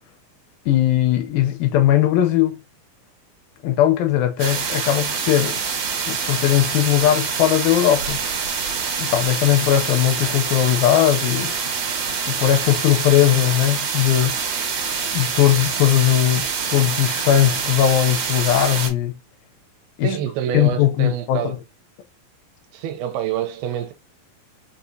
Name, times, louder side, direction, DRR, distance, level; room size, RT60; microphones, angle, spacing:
voice 1, 0.7-2.6 3.6-5.6 6.1-8.2 9.0-11.5 12.3-14.4 15.1-19.1 20.0-20.1 20.5-21.6, left 12 dB, 80° left, 2.3 m, -19 dB
sound 1, 4.4-18.9, right 6 dB, 65° right, 1.6 m, -25 dB
voice 2, 20.0-21.5 22.7-23.9, right 10 dB, 85° right, 2.5 m, -26 dB
6.0 x 2.8 x 2.6 m
omnidirectional pair, 4.4 m